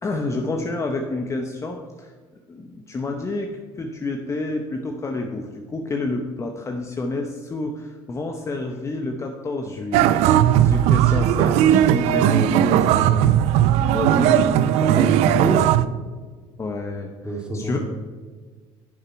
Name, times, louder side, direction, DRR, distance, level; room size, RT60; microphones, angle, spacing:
voice 1, 0.0-2.1 2.5-13.3 13.9-14.4 16.6-17.8, left 2 dB, 25° left, 3 dB, 0.9 m, -29 dB
sound 1, 9.9-15.9, right 11 dB, 70° right, 0.5 m, -17 dB
voice 2, 14.1-15.7 17.2-17.8, right 1 dB, 10° right, 0 dB, 2.4 m, -27 dB
10.5 x 6.8 x 4.5 m, 1.5 s
supercardioid pair, 95°, 11 cm